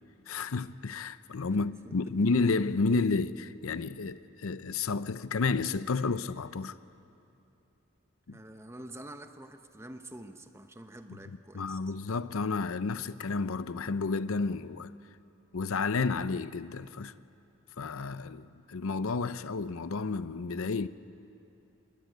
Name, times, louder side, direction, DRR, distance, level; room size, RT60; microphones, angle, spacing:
voice 1, 0.3-6.8 8.3-8.4 11.5-14.9 15.5-17.1 17.8-20.9, left 4 dB, 75° left, 0.6 m, -31 dB
voice 2, 1.6-2.0 8.3-11.8, right 1 dB, 10° right, 1.0 m, -47 dB
26.0 x 20.5 x 9.2 m
head